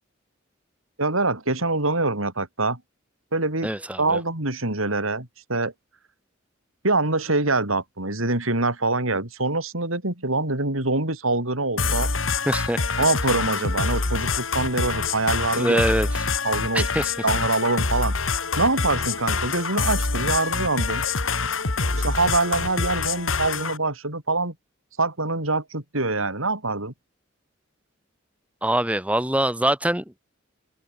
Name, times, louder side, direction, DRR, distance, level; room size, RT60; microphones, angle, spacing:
voice 1, 1.0-2.8 3.3-3.7 4.0-5.7 6.8-12.1 13.0-15.8 16.4-16.9 17.2-18.1 18.6-21.0 21.9-24.6 25.0-26.9, right 2 dB, 90° right, 5.8 m, -24 dB
voice 2, 3.6-4.0 12.5-12.8 15.6-16.1 16.7-17.1 28.6-30.0, right 1 dB, 5° right, 2.1 m, -23 dB
sound 1, 11.8-23.8, left 4 dB, 75° left, 2.3 m, -26 dB
head